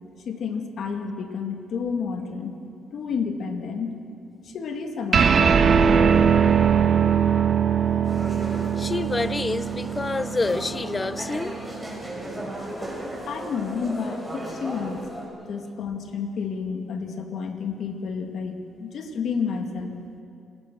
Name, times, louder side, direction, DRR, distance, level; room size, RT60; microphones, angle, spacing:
voice 1, 0.2-2.6 2.9-4.0 4.4-5.7 7.2-7.3 13.3-15.0 15.5-19.9, left 5 dB, 65° left, 2.6 m, -30 dB
sound 1, 5.1-11.9, right 7 dB, 50° right, 1.1 m, -21 dB
sound 2, 8.0-15.2, right 1 dB, ahead, 7.9 m, -36 dB
voice 2, 8.6-11.6, left 3 dB, 25° left, 0.7 m, -28 dB
28.0 x 19.5 x 6.5 m
cardioid pair, 90°, 0 cm